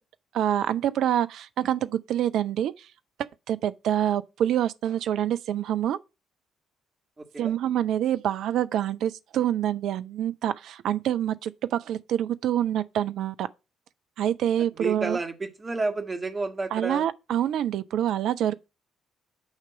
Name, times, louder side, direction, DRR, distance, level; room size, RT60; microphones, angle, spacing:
voice 1, 0.3-2.9 3.5-6.0 7.4-13.5 14.2-15.2 16.7-18.5, right 11 dB, 60° right, 0.4 m, -26 dB
voice 2, 7.2-7.5 14.8-17.1, right 3 dB, 25° right, 1.5 m, -31 dB
8.7 x 2.9 x 5.8 m
figure-of-eight pair, 45°, 0 cm